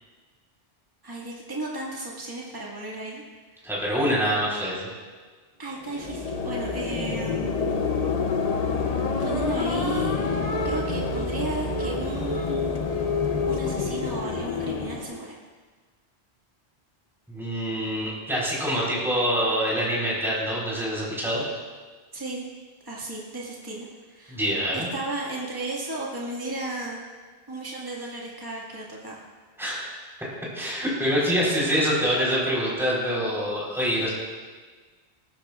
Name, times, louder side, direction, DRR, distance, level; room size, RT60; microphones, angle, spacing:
voice 1, 1.0-3.2 3.6-3.7 5.6-7.6 9.2-10.1 10.6-12.8 13.5-15.4 22.1-22.4 22.9-24.4 24.7-27.0 27.5-29.2, right 2 dB, 20° right, -5 dB, 2.0 m, -34 dB
voice 2, 3.6-4.9 17.3-21.4 24.3-24.9 29.6-29.9 30.5-34.1, equal, ahead, -6 dB, 3.9 m, -25 dB
sound 1, 5.8-15.2, left 4 dB, 40° left, 0.8 m, -27 dB
20.0 x 17.0 x 2.4 m, 1.4 s
omnidirectional pair, 1.1 m